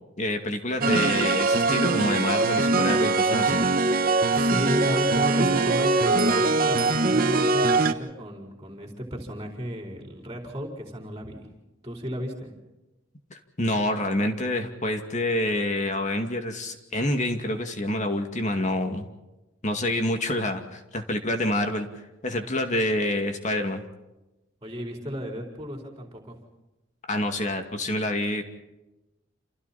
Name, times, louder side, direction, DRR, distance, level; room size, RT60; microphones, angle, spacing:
voice 1, 0.2-3.6 13.3-19.1 19.6-21.9 22.2-23.8 27.1-28.4, left 1 dB, 40° left, 5 dB, 2.4 m, -27 dB
sound 1, 0.8-7.9, right 3 dB, 45° right, 1.4 m, -22 dB
voice 2, 4.3-11.5 11.8-12.5 24.6-26.4, equal, 20° right, 1 dB, 4.5 m, -33 dB
29.0 x 28.0 x 4.4 m, 1.0 s
head